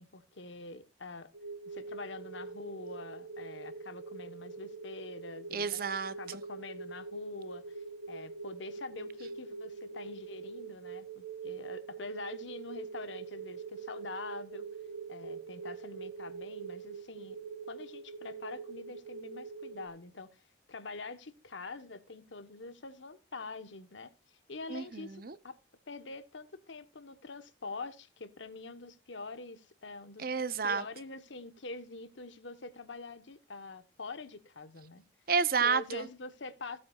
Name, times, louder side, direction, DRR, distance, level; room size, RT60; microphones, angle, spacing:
voice 1, 0.0-1.3 1.7-5.8 6.1-14.7 15.1-17.4 17.7-20.4 20.7-24.1 24.5-25.6 25.9-30.3 30.6-35.0 35.6-36.8, left 3 dB, 75° left, 1.2 m, -45 dB
sound 1, 1.3-19.9, right 4 dB, 85° right, 1.1 m, -44 dB
voice 2, 5.5-6.1 24.7-25.3 30.2-30.8 35.3-36.1, right 5 dB, 50° right, 0.7 m, -30 dB
16.0 x 8.4 x 2.4 m
head